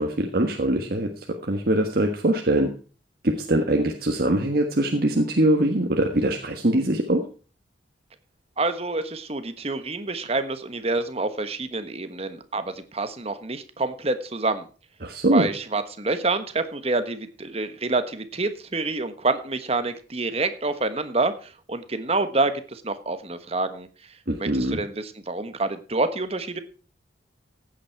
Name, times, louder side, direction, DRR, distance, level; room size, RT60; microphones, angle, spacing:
voice 1, 0.0-2.7 3.2-7.2 15.0-15.5 24.3-24.8, right 1 dB, 55° right, 3 dB, 1.5 m, -22 dB
voice 2, 8.6-14.7 15.3-23.9 24.4-26.6, right 3 dB, 35° right, 10 dB, 1.3 m, -27 dB
15.5 x 8.7 x 4.6 m, 0.37 s
head